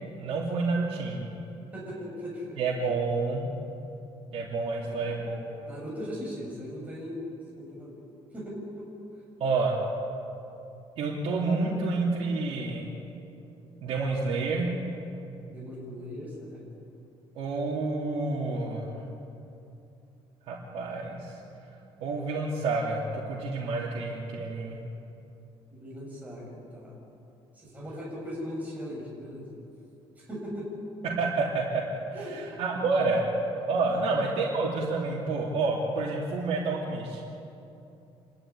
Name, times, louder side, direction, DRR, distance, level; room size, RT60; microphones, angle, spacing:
voice 1, 0.2-1.3 2.6-3.5 4.3-5.4 9.4-9.8 11.0-12.9 13.8-14.8 17.4-19.0 20.5-21.4 22.0-24.8 31.0-31.8 32.2-33.2 33.6-37.3, right 3 dB, 65° right, -5 dB, 3.4 m, -29 dB
voice 2, 1.7-2.9 4.8-5.1 5.6-7.2 7.6-8.0 8.3-8.9 15.5-16.7 25.7-26.9 27.5-29.5 30.2-30.7 32.1-32.4 33.9-34.0, equal, 15° right, -4 dB, 6.6 m, -39 dB
28.0 x 13.0 x 9.9 m, 2.8 s
cardioid pair, 155°, 11 cm